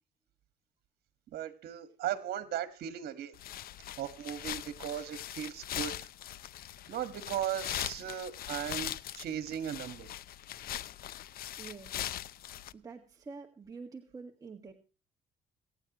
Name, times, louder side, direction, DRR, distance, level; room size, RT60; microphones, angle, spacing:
voice 1, 1.3-3.4 4.0-6.1 6.9-10.1, right 10 dB, 65° right, 10 dB, 1.7 m, -37 dB
sound 1, 3.3-12.7, left 12 dB, 60° left, 0.7 m, -41 dB
voice 2, 11.6-12.0 12.7-14.7, right 4 dB, 20° right, 1 dB, 1.8 m, -47 dB
27.0 x 9.3 x 3.1 m, 0.34 s
cardioid pair, 110°, 17 cm